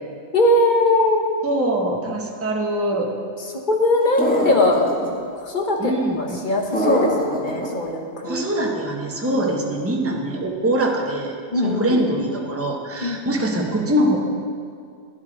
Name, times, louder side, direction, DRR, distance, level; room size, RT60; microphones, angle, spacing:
voice 1, 0.3-1.2 3.7-4.9 5.3-8.4 9.2-9.4 11.5-12.0 13.0-13.4, left 1 dB, 45° left, 1 dB, 1.2 m, -20 dB
voice 2, 1.4-3.1 5.8-6.4 8.2-11.3 11.6-14.2, right 1 dB, 15° right, 0 dB, 0.9 m, -23 dB
sound 1, 4.2-5.1 6.7-7.7, equal, 10° left, 1.2 m, -22 dB
11.0 x 10.5 x 4.0 m, 2.3 s
omnidirectional pair, 1.2 m